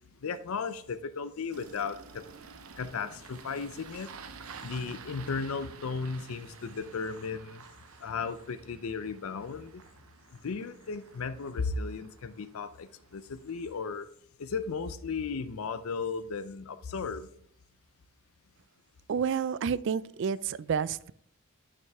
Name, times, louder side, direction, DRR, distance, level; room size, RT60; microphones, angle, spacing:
voice 1, 0.2-2.3 2.8-4.1 4.6-7.6 8.0-9.8 10.4-14.1 14.4-17.3, left 5 dB, 80° left, 12 dB, 0.5 m, -35 dB
Engine starting, 1.5-13.9, right 5 dB, 80° right, 0.8 m, -51 dB
voice 2, 19.1-21.1, right 7 dB, 60° right, 19 dB, 0.3 m, -30 dB
9.1 x 6.0 x 3.5 m, 0.67 s
head